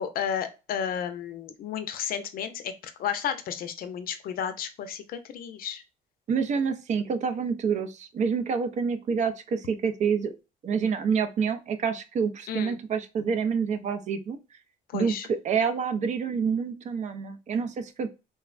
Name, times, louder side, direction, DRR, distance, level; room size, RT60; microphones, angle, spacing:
voice 1, 0.0-2.7 3.0-5.8 12.5-12.8 14.9-15.3, left 8 dB, 60° left, 9 dB, 0.5 m, -32 dB
voice 2, 6.3-10.4 10.6-14.4 14.9-15.1 15.4-18.1, right 6 dB, 45° right, 9 dB, 0.4 m, -27 dB
3.4 x 2.1 x 2.3 m, 0.29 s
cardioid pair, 110°, 17 cm